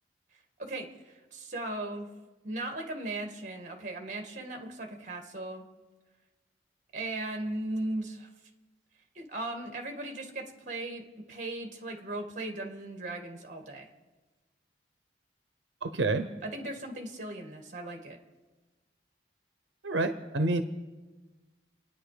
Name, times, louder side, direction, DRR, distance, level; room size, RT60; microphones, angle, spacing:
voice 1, 0.6-2.1 2.4-5.6 6.9-8.3 9.1-11.0 11.3-13.9 16.4-18.2, right 2 dB, 40° right, 3 dB, 2.1 m, -37 dB
voice 2, 15.8-16.3 19.8-20.6, right 2 dB, 90° right, 9 dB, 0.9 m, -28 dB
29.5 x 9.8 x 5.0 m, 1.3 s
head